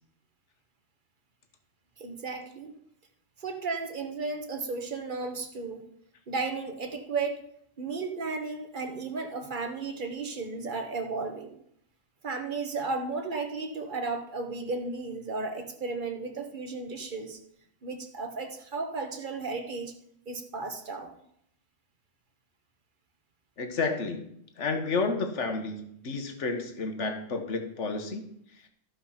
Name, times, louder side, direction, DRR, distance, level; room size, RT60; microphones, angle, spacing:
voice 1, 2.0-2.8 3.4-5.9 6.3-7.4 7.8-11.6 12.2-17.4 17.8-19.9 20.3-21.2, right 4 dB, 40° right, 5 dB, 1.3 m, -34 dB
voice 2, 23.6-24.2 24.6-28.2, left 3 dB, 65° left, 5 dB, 1.6 m, -31 dB
14.0 x 5.4 x 5.8 m, 0.71 s
omnidirectional pair, 1.3 m